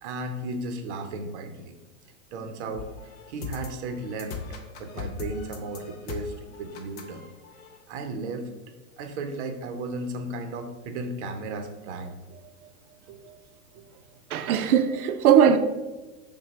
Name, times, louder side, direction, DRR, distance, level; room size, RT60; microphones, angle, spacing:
voice 1, 0.0-1.8 2.3-2.9 3.3-4.4 4.8-7.2 7.9-8.5 9.0-12.2 13.1-13.3 13.7-13.8, right 2 dB, 50° right, 0.7 m, -35 dB
sound 1, 2.8-7.8, left 5 dB, 30° left, 0.5 m, -39 dB
voice 2, 14.3-15.6, right 8 dB, 85° right, 0.6 m, -19 dB
5.8 x 2.3 x 4.0 m
hypercardioid pair, 130°, 43 cm